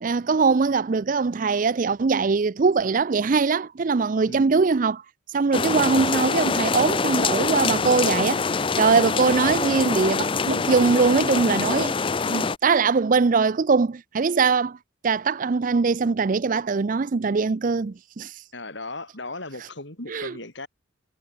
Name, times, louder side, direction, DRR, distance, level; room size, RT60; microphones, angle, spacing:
voice 1, 0.0-5.0 5.3-11.9 12.2-14.8 15.0-18.3 20.1-20.3, right 4 dB, 40° right, 0.4 m, -22 dB
sound 1, 5.5-12.6, left 4 dB, 25° left, 0.5 m, -24 dB
voice 2, 18.5-20.7, left 2 dB, 60° left, 5.3 m, -37 dB
head